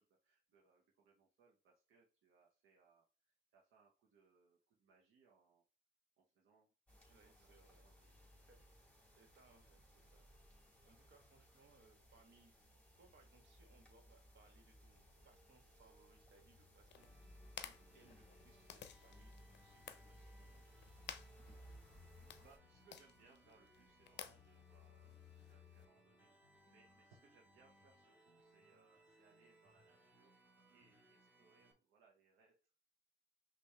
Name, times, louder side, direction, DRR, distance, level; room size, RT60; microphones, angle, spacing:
voice 1, 0.0-5.6 6.2-7.6 7.8-8.1 22.2-26.3 26.6-32.9, right 4 dB, 85° right, -1 dB, 1.0 m, -72 dB
sound 1, 6.9-22.6, equal, 5° left, 2.6 m, -63 dB
voice 2, 7.1-7.9 8.4-8.8 9.1-12.5 13.0-20.5, right 3 dB, 60° right, 4 dB, 1.5 m, -70 dB
sound 2, 16.9-25.9, left 9 dB, 60° left, 0.6 m, -56 dB
sound 3, 17.0-31.7, right 1 dB, 10° right, 1.5 m, -69 dB
5.5 x 2.6 x 3.4 m, 0.32 s
cardioid pair, 90°, 20 cm